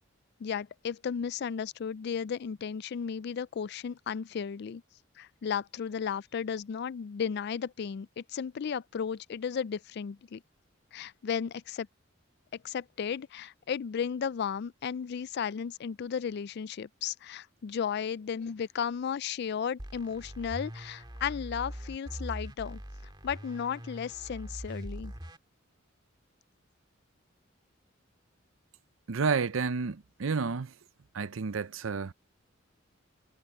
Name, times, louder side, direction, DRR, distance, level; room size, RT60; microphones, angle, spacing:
voice 1, 0.4-4.8 5.2-10.4 10.9-11.9 12.5-22.8 23.2-25.1, left 7 dB, 55° left, 0.3 m, -34 dB
sound 1, 19.8-25.4, equal, 20° right, 2.1 m, -42 dB
voice 2, 29.1-30.7 31.1-32.1, right 5 dB, 80° right, 0.6 m, -30 dB
head